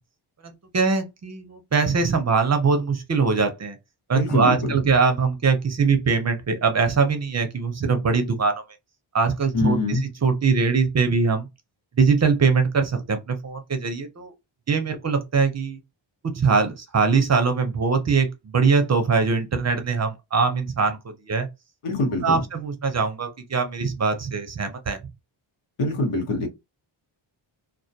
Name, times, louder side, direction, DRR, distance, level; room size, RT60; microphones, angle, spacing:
voice 1, 0.4-3.8 4.1-8.6 9.1-11.5 12.0-14.3 14.7-15.8 16.2-21.0 21.3-21.5 22.2-25.0, right 5 dB, 35° right, 0.4 m, -22 dB
voice 2, 4.1-4.8 9.5-10.0 21.8-22.4 25.8-26.5, left 2 dB, 90° left, 1.0 m, -24 dB
2.2 x 2.2 x 2.6 m
wide cardioid pair, 150°, 50 cm